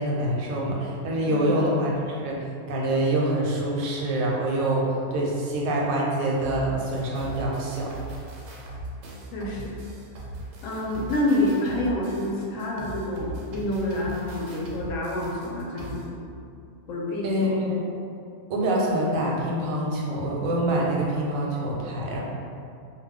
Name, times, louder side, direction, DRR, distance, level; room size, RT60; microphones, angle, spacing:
voice 1, 0.0-2.4 2.7-7.9 17.2-17.9 18.5-22.2, right 1 dB, 85° right, -3 dB, 1.0 m, -25 dB
voice 2, 1.3-1.7 9.3-9.7 10.6-16.2 16.9-17.7, left 1 dB, 75° left, -3 dB, 0.9 m, -28 dB
sound 1, 6.4-16.1, right 2 dB, 65° right, 0.7 m, -39 dB
2.4 x 2.2 x 3.5 m, 2.5 s
omnidirectional pair, 1.4 m